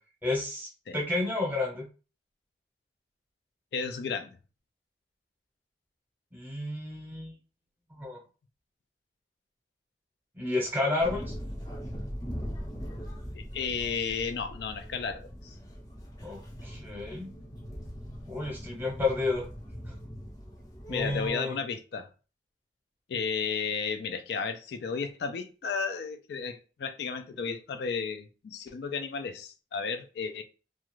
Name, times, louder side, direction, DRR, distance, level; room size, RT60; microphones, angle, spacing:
voice 1, 0.2-1.9 6.3-7.4 7.9-8.2 10.3-11.3 16.2-17.3 18.3-19.5 20.9-21.6, left 2 dB, 10° right, 0.8 m, -31 dB
voice 2, 3.7-4.4 13.3-15.6 20.9-22.1 23.1-30.4, left 5 dB, 70° left, 0.3 m, -33 dB
sound 1, 11.0-21.3, equal, 20° left, 0.5 m, -41 dB
2.4 x 2.3 x 3.0 m
head